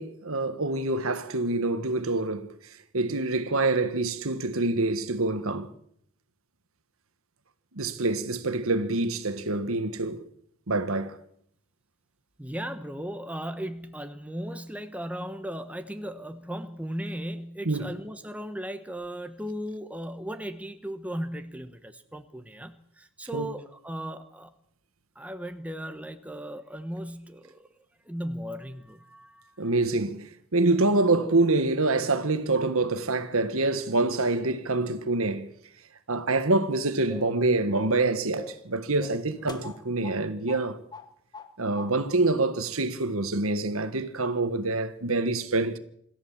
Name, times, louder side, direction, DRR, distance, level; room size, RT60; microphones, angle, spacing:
voice 1, 0.0-2.5 2.9-5.7 7.7-10.2 10.7-11.2 17.6-17.9 23.3-23.5 29.6-35.5 36.1-40.8 41.6-45.8, right 2 dB, 75° right, 1.6 m, -26 dB
voice 2, 12.4-24.5 25.1-27.7 28.0-29.5, equal, 5° right, 1.2 m, -36 dB
sound 1, 37.1-37.4 37.7-38.0 38.4-38.7 39.0-40.2 40.5-40.6 40.9-41.5 41.8-41.9, left 3 dB, 20° left, 1.5 m, -42 dB
25.5 x 14.0 x 7.3 m
head